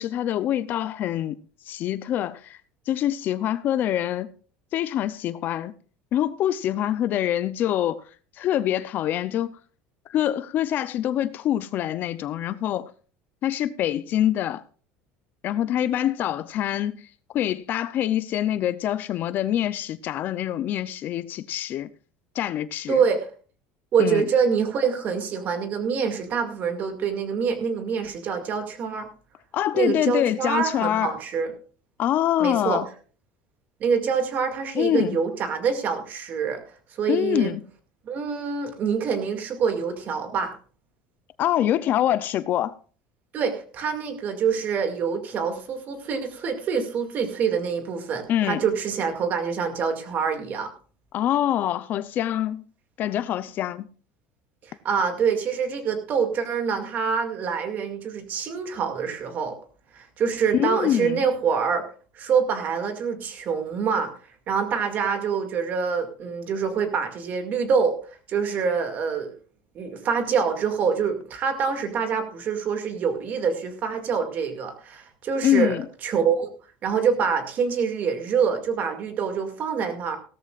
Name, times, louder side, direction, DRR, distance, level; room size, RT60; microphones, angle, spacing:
voice 1, 0.0-1.4 1.7-2.6 2.9-4.3 4.7-5.7 6.1-8.0 8.4-9.6 10.1-12.9 13.4-14.6 15.4-17.1 17.3-21.9 22.3-23.0 24.0-24.3 29.5-31.1 32.0-32.9 34.8-35.2 37.1-37.7 41.4-42.7 48.3-48.6 51.1-52.6 53.0-53.9 60.5-61.2 75.4-75.9, left 11 dB, 40° left, 0.5 m, -25 dB
voice 2, 22.9-23.3 23.9-29.1 29.7-31.5 32.4-32.8 33.8-36.6 36.9-37.6 38.1-40.6 43.3-50.7 54.7-59.6 59.9-61.8 62.2-64.1 64.5-68.0 68.3-69.3 69.7-76.5 76.8-80.2, right 6 dB, 40° right, 2.2 m, -25 dB
17.0 x 13.5 x 2.4 m
cardioid pair, 155°, 5 cm